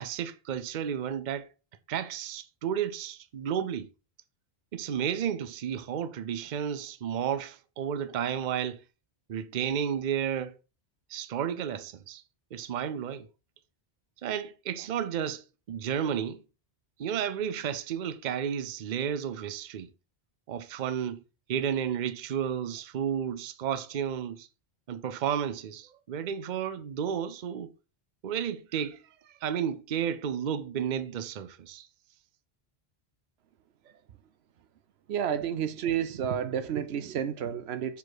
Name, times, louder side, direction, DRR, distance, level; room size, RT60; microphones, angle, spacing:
voice 1, 0.0-1.5 1.9-3.9 4.7-8.8 9.3-10.6 11.1-12.2 12.5-13.3 14.2-16.4 17.0-19.9 20.5-21.2 21.5-24.5 24.9-27.7 28.2-31.9, right 8 dB, 55° right, 0.7 m, -32 dB
voice 2, 35.1-38.0, right 9 dB, 85° right, 0.9 m, -30 dB
6.9 x 5.0 x 4.0 m
omnidirectional pair, 1.0 m